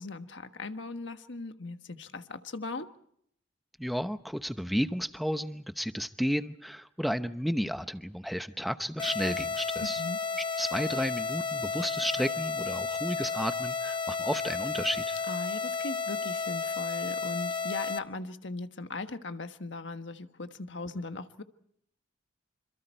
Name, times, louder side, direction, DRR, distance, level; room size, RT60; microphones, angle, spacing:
voice 1, 0.0-2.9 9.8-10.2 15.3-21.4, left 3 dB, 65° left, 8 dB, 1.4 m, -39 dB
voice 2, 3.8-10.0 10.6-15.2, equal, ahead, 10 dB, 0.8 m, -32 dB
sound 1, 9.0-18.0, left 5 dB, 25° left, 0.8 m, -32 dB
27.0 x 26.5 x 4.5 m, 0.69 s
head